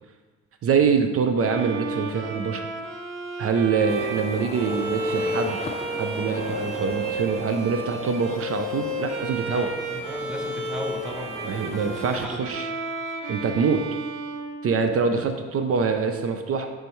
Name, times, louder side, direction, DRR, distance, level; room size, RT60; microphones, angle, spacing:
voice 1, 0.6-2.6 3.4-5.6 5.9-9.7 11.4-12.7 13.3-13.8 14.6-16.7, right 5 dB, 50° right, 6 dB, 0.5 m, -24 dB
Bowed string instrument, 1.4-15.3, right 2 dB, 90° right, 0.7 m, -32 dB
sound 1, 3.9-12.3, left 4 dB, 20° left, 0.4 m, -38 dB
voice 2, 9.5-11.7 12.1-12.6, left 1 dB, 5° right, 0 dB, 1.0 m, -36 dB
9.1 x 3.4 x 3.1 m, 1.4 s
cardioid pair, 90°, 30 cm